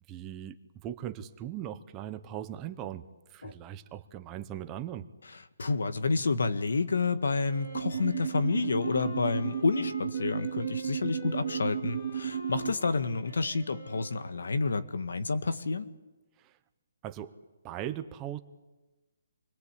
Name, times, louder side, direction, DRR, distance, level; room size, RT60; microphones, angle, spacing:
voice 1, 0.1-3.0 3.3-5.1 16.4-16.5 17.0-17.3 17.6-18.4, right 11 dB, 15° right, 8 dB, 0.8 m, -39 dB
voice 2, 5.6-15.9, left 4 dB, 85° left, 10 dB, 1.8 m, -29 dB
Wind instrument woodwind instrument, 7.4-14.5, left 1 dB, 50° left, 7.3 m, -45 dB
sound 1, 7.7-12.7, right 9 dB, 40° right, 1.0 m, -34 dB
27.5 x 21.0 x 8.4 m, 1.1 s
hypercardioid pair, 170°, 0 cm